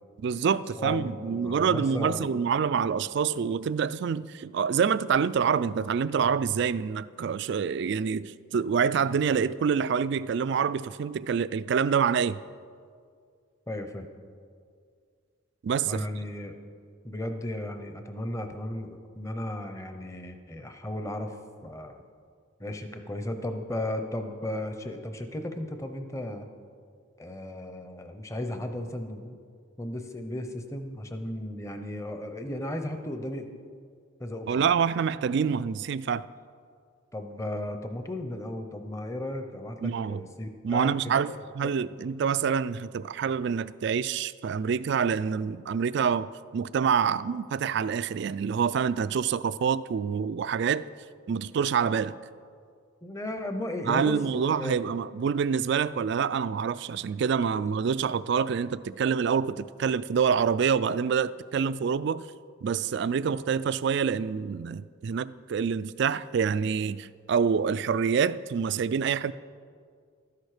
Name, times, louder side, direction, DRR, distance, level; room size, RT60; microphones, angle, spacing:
voice 1, 0.2-12.4 15.6-16.0 34.5-36.3 39.8-40.2 40.6-50.9 51.3-52.2 53.9-62.2 62.6-69.3, right 6 dB, 55° right, 16 dB, 0.3 m, -26 dB
voice 2, 0.8-2.3 13.7-14.1 15.8-16.6 17.0-21.4 21.6-22.0 22.6-26.5 27.2-29.4 29.8-33.6 34.2-34.7 37.1-41.7 53.0-54.8 57.5-57.7, left 1 dB, 15° left, 7 dB, 0.8 m, -35 dB
13.0 x 10.5 x 5.0 m, 2.1 s
head